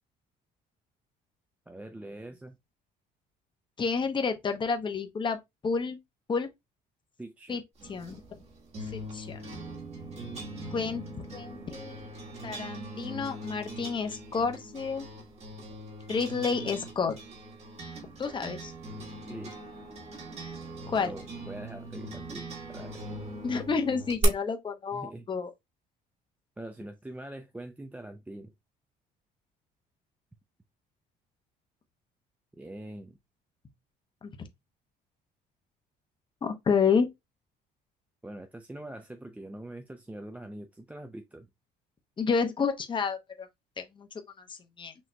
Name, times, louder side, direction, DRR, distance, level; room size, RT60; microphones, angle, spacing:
voice 1, 1.7-2.6 7.2-7.6 19.3-19.5 21.0-23.0 24.9-25.3 26.6-28.5 32.5-33.2 38.2-41.5, right 1 dB, 10° right, 0.4 m, -43 dB
voice 2, 3.8-5.4 5.6-6.0 6.3-6.5 7.5-7.6 7.9-8.2 8.9-9.4 10.7-11.0 11.3-12.1 12.4-15.1 16.1-17.1 18.2-18.7 20.9-21.1 23.4-25.5 34.2-34.3 36.4-37.1 42.2-43.5 43.8-44.1 44.5-44.9, left 5 dB, 30° left, 0.8 m, -30 dB
sound 1, 7.8-24.2, right 2 dB, 40° right, 1.4 m, -41 dB
6.2 x 2.8 x 2.2 m
cardioid pair, 110°, 17 cm